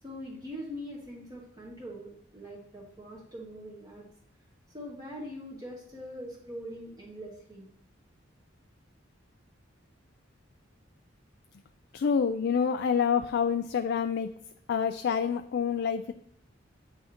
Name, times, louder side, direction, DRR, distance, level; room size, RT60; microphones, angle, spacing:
voice 1, 0.0-4.0 4.7-7.7, equal, 20° right, -5 dB, 1.1 m, -42 dB
voice 2, 11.9-14.4 14.7-16.1, left 6 dB, 60° left, 9 dB, 0.3 m, -27 dB
8.6 x 5.6 x 2.9 m, 0.64 s
head